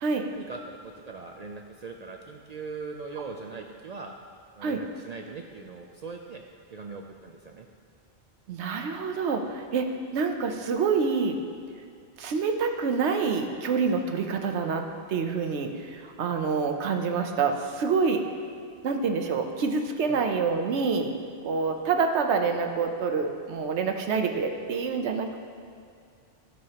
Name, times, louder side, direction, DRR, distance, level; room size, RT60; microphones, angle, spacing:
voice 1, 0.3-4.2 4.5-6.4 6.7-7.7 20.1-20.3, right 4 dB, 60° right, 2 dB, 0.4 m, -40 dB
voice 2, 8.5-9.9 10.1-11.4 12.2-18.2 18.8-21.1 21.4-25.4, right 5 dB, 80° right, 5 dB, 1.0 m, -27 dB
12.5 x 6.9 x 2.9 m, 2.3 s
omnidirectional pair, 1.2 m